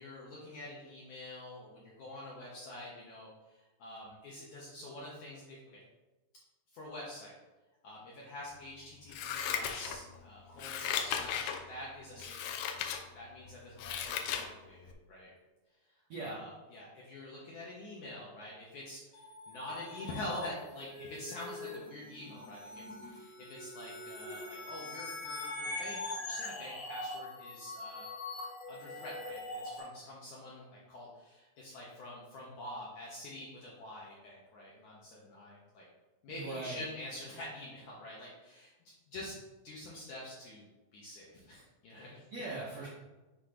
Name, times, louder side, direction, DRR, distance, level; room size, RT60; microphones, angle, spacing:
voice 1, 0.0-5.8 6.7-7.3 7.8-12.7 13.1-15.3 16.2-28.1 28.7-35.9 36.2-39.4 39.6-40.6 40.9-42.3, left 1 dB, 75° left, -5 dB, 1.8 m, -46 dB
Scissors, 9.1-10.2 10.6-11.6 12.2-13.0 13.4-14.5 14.9-15.0, left 8 dB, 90° left, 1.9 m, -36 dB
voice 2, 16.1-16.4 36.3-36.8 42.0-42.9, right 2 dB, 85° right, -5 dB, 1.4 m, -41 dB
sound 1, 19.1-29.8, left 2 dB, 60° left, 2.0 m, -43 dB
8.2 x 2.9 x 5.0 m, 1.1 s
omnidirectional pair, 4.7 m